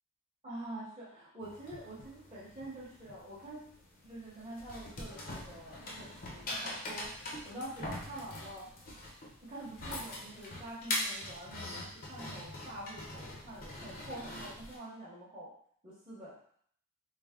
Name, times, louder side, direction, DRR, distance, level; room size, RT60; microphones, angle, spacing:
voice 1, 0.4-3.7 4.0-7.1 7.4-8.7 9.4-15.5 15.8-16.4, right 1 dB, 25° right, -10 dB, 0.8 m, -46 dB
sound 1, 1.4-14.8, left 1 dB, 40° left, 0.7 m, -43 dB
3.3 x 2.0 x 3.5 m, 0.63 s
head